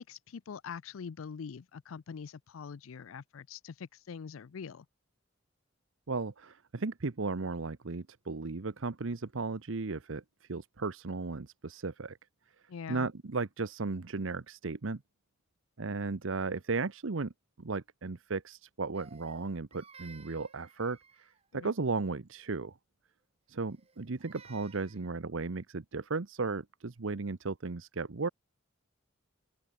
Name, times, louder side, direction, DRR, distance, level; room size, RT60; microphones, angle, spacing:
voice 1, 0.0-4.8 12.7-13.1 21.5-21.7, left 6 dB, 80° left, 0.4 m, -44 dB
voice 2, 6.1-10.2 10.5-12.2 12.9-15.0 15.8-17.3 17.6-21.3 21.5-22.7 23.5-28.3, right 3 dB, 70° right, 0.8 m, -35 dB
Crying sobbing, 18.9-21.5 23.7-25.1, right 5 dB, 30° right, 1.5 m, -56 dB
open air
head